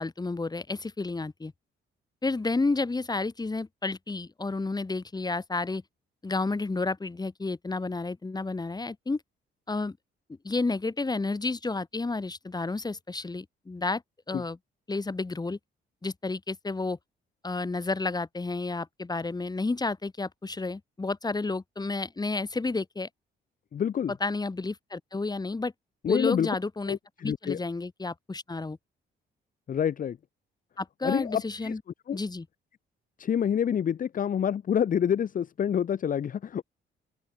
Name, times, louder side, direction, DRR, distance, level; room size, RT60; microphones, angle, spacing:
voice 1, 0.0-1.5 2.2-5.8 6.2-9.2 9.7-10.0 10.4-14.0 14.3-14.6 14.9-15.6 16.0-17.0 17.4-23.1 24.2-25.7 26.1-28.8 30.8-31.8 32.1-32.5, left 3 dB, 20° left, 2.5 m, -31 dB
voice 2, 23.7-24.1 26.0-26.5 26.9-27.6 29.7-30.2 31.0-31.7 32.1-32.2 33.2-36.6, left 8 dB, 45° left, 0.7 m, -27 dB
open air
cardioid pair, 90°, 20 cm